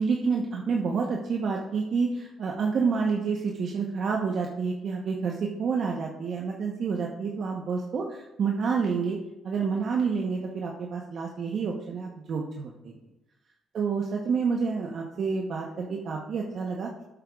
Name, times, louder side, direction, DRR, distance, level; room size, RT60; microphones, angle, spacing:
voice 1, 0.0-9.2 9.4-12.9 13.7-16.9, right 5 dB, 60° right, 0 dB, 1.0 m, -28 dB
12.0 x 8.5 x 2.4 m, 0.93 s
cardioid pair, 90°, 0 cm